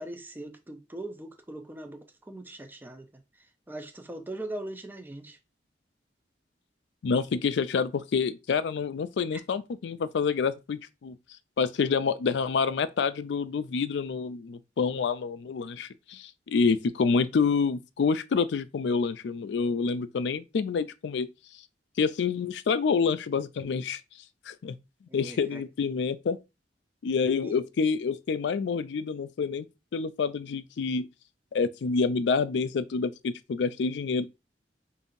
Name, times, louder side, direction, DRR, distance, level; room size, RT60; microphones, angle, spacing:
voice 1, 0.0-3.1 3.4-5.4 9.3-9.4 25.1-25.6 27.4-27.6, right 1 dB, 10° right, 0.5 m, -40 dB
voice 2, 7.0-11.2 11.6-21.3 22.0-24.0 24.5-24.8 25.1-26.4 27.0-29.7 29.9-31.1 31.5-34.3, left 5 dB, 75° left, 0.4 m, -27 dB
5.2 x 2.6 x 2.6 m
head